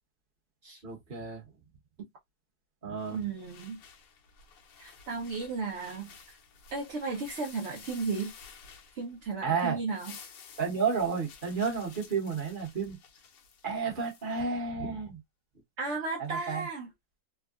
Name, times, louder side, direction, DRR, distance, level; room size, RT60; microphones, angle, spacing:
voice 1, 0.8-1.4 2.8-3.3 9.4-9.8 10.6-13.0 13.6-15.2 16.2-16.7, right 5 dB, 35° right, 1.0 m, -31 dB
sound 1, 3.0-9.4 9.7-14.4, left 6 dB, 70° left, 1.4 m, -52 dB
voice 2, 3.1-3.8 4.8-6.1 6.7-8.3 8.9-10.1 15.8-16.9, right 4 dB, 60° right, 0.7 m, -34 dB
3.6 x 2.2 x 2.3 m
omnidirectional pair, 2.0 m